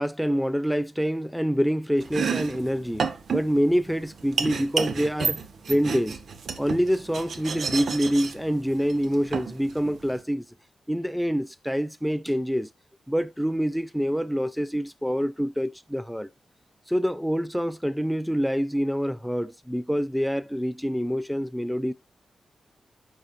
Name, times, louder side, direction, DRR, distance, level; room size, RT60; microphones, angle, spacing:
voice 1, 0.0-3.1 3.3-5.4 5.7-6.2 6.6-10.5 10.9-12.7 13.1-16.3 16.9-21.9, equal, ahead, 0.5 m, -26 dB
Domestic sounds home sounds, 2.0-10.2, right 5 dB, 65° right, 1.0 m, -31 dB
10.0 x 6.0 x 2.6 m
wide cardioid pair, 115°, 0 cm